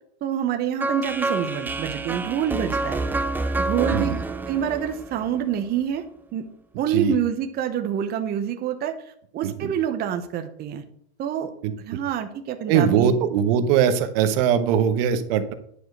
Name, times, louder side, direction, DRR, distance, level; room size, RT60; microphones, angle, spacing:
voice 1, 0.2-3.0 3.6-4.1 4.5-6.0 6.3-6.5 6.8-10.8 11.2-11.5 11.8-13.2, right 9 dB, 30° right, 7 dB, 0.9 m, -27 dB
sound 1, 0.8-5.8, right 2 dB, 5° right, 0.4 m, -28 dB
voice 2, 12.7-15.5, right 8 dB, 60° right, 10 dB, 1.2 m, -21 dB
10.0 x 4.9 x 6.6 m, 0.67 s
supercardioid pair, 135°, 33 cm